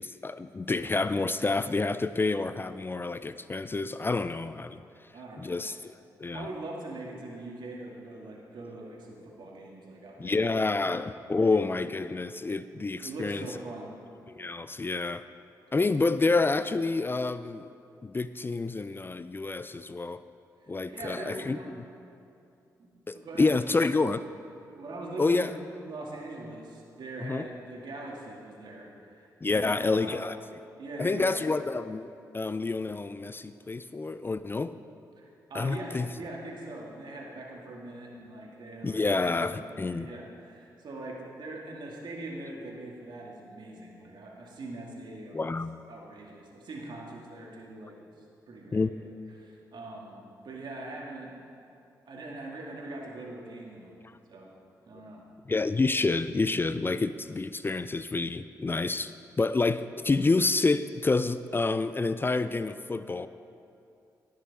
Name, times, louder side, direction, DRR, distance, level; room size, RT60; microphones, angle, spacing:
voice 1, 0.0-4.8 5.4-5.9 6.2-6.5 10.2-13.5 14.3-15.2 15.7-17.7 18.0-20.2 20.7-21.6 23.1-24.2 25.2-25.5 27.2-27.5 29.4-30.4 31.0-32.1 32.3-34.7 35.5-36.1 38.8-40.1 45.3-45.8 48.7-48.9 55.5-59.1 59.4-63.3, left 3 dB, 25° left, 13 dB, 0.4 m, -28 dB
voice 2, 5.1-5.6 6.3-10.5 11.3-11.6 13.0-13.9 20.6-21.7 22.8-23.5 24.7-25.5 25.8-31.5 35.2-45.6 45.9-48.1 48.5-49.1 49.4-51.3 52.1-53.9 54.3-54.5 54.9-55.2, right 2 dB, 65° right, -2 dB, 2.2 m, -42 dB
18.5 x 6.5 x 4.2 m, 2.6 s
supercardioid pair, 50°, 8 cm